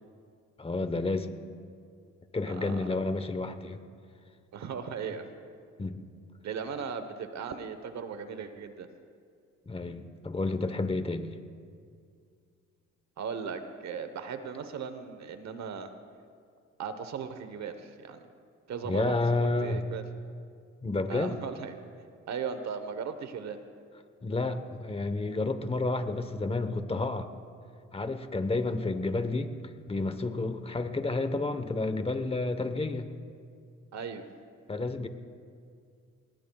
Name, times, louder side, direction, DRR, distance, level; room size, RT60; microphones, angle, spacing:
voice 1, 0.6-1.3 2.3-3.8 5.8-6.0 9.7-11.3 18.8-19.8 20.8-21.3 24.2-27.3 27.9-29.5 29.9-33.1 34.7-35.1, left 2 dB, 20° left, 9 dB, 1.0 m, -30 dB
voice 2, 2.4-3.0 4.5-5.3 6.4-8.9 13.2-15.9 16.8-18.2 18.7-20.0 21.1-21.7 22.3-23.6 33.9-34.2, right 6 dB, 65° right, 9 dB, 1.1 m, -37 dB
22.0 x 19.5 x 2.3 m, 2.3 s
cardioid pair, 90°, 30 cm